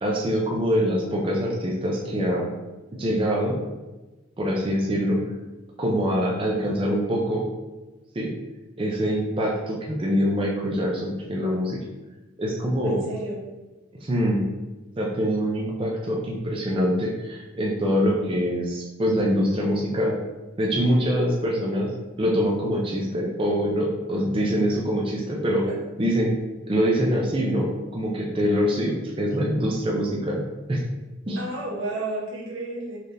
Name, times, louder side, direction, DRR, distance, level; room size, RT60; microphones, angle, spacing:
voice 1, 0.0-2.5 3.0-3.6 4.4-5.2 5.8-7.4 8.1-8.3 8.8-11.8 12.4-13.0 14.0-14.4 15.0-20.1 20.6-21.9 22.2-25.6 26.0-26.3 26.7-27.7 27.9-30.4 30.7-30.8 31.3-31.4, equal, 25° right, -2 dB, 0.5 m, -24 dB
voice 2, 12.8-13.4 25.6-25.8 31.4-33.0, right 2 dB, 85° right, -3 dB, 1.1 m, -32 dB
4.1 x 3.2 x 2.6 m, 1.1 s
head